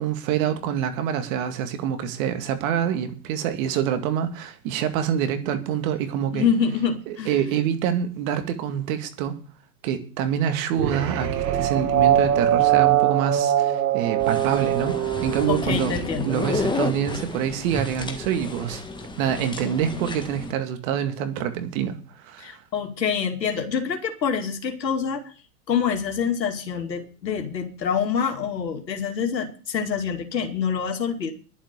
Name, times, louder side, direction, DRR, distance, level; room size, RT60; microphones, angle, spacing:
voice 1, 0.0-6.5 7.1-9.4 9.8-18.8 19.2-22.0 22.2-22.6, right 9 dB, 55° right, 2.2 m, -26 dB
voice 2, 6.3-7.4 11.8-11.9 15.5-16.3 22.4-25.2 25.7-31.3, left 7 dB, 90° left, 2.5 m, -26 dB
sound 1, 10.8-16.3, right 11 dB, 75° right, 1.9 m, -22 dB
sound 2, 14.2-20.5, left 3 dB, 10° left, 1.6 m, -31 dB
11.5 x 7.2 x 8.9 m
hypercardioid pair, 110°, 50 cm